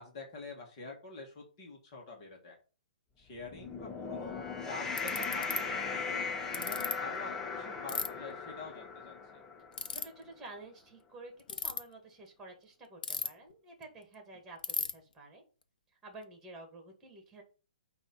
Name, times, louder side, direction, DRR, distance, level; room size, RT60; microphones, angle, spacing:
voice 1, 0.0-2.6 3.2-6.2 6.5-9.4, left 3 dB, 35° left, 0 dB, 2.1 m, -47 dB
sound 1, 3.4-9.9, left 5 dB, 10° left, 0.7 m, -38 dB
Ratchet pawl, 4.3-4.4 5.0-5.6 6.5-6.9 7.9-8.1 9.7-10.0 11.4-11.8 13.0-13.5 13.8-13.9 14.1-14.2 14.6-14.9, left 6 dB, 80° left, 1.0 m, -34 dB
voice 2, 9.9-15.4 16.0-17.4, right 2 dB, 10° right, 3 dB, 2.0 m, -51 dB
9.0 x 3.1 x 5.5 m, 0.35 s
hypercardioid pair, 160°, 5 cm